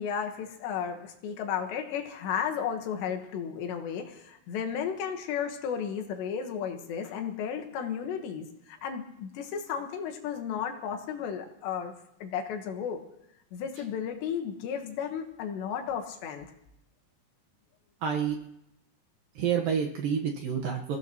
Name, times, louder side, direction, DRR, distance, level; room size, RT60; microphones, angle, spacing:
voice 1, 0.0-11.9 12.2-13.0 13.5-16.5, left 7 dB, 80° left, 4 dB, 3.5 m, -34 dB
voice 2, 18.0-18.4 19.4-21.0, right 7 dB, 65° right, 1 dB, 2.5 m, -28 dB
29.5 x 16.5 x 3.0 m, 0.78 s
omnidirectional pair, 5.0 m